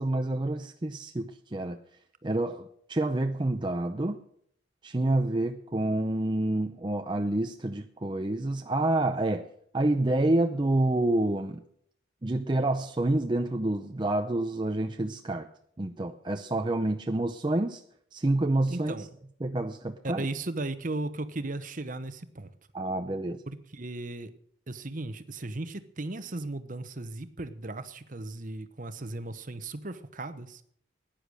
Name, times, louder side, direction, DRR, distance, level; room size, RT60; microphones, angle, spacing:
voice 1, 0.0-1.8 2.2-4.2 4.8-9.5 9.7-11.6 12.2-15.5 15.8-17.8 18.1-18.9 19.4-20.3 22.7-23.4, right 2 dB, 25° right, 5 dB, 0.6 m, -28 dB
voice 2, 18.7-19.1 20.0-22.5 23.5-24.3 24.7-30.6, right 2 dB, 40° right, 11 dB, 1.0 m, -36 dB
15.5 x 10.0 x 6.3 m, 0.67 s
head